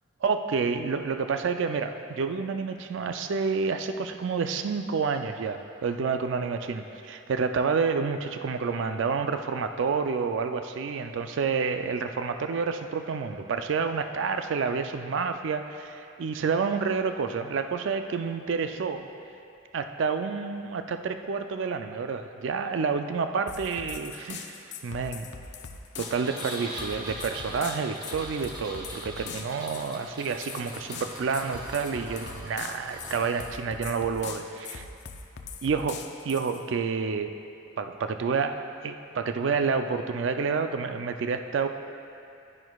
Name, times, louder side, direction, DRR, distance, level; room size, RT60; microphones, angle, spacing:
voice 1, 0.2-19.1 19.7-25.3 26.0-34.4 35.6-37.4 37.8-41.7, right 5 dB, 65° right, 7 dB, 0.4 m, -29 dB
sound 1, 23.5-36.6, left 6 dB, 55° left, 0.5 m, -41 dB
Engine, 26.0-33.5, right 1 dB, 20° right, 0.9 m, -42 dB
11.0 x 10.5 x 2.3 m, 2.6 s
head